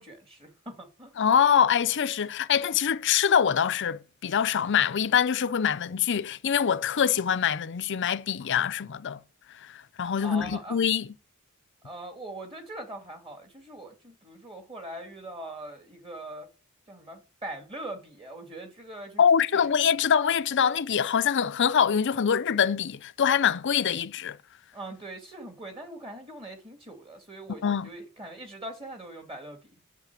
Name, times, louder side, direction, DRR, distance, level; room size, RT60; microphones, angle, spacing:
voice 1, 0.0-1.2 10.2-10.8 11.8-16.5 16.9-19.2 19.5-19.6 24.7-29.8, right 1 dB, 25° right, 2.3 m, -41 dB
voice 2, 1.2-9.2 9.6-11.1 19.2-24.4 27.6-27.9, left 8 dB, 60° left, 0.5 m, -24 dB
8.2 x 7.1 x 8.2 m
head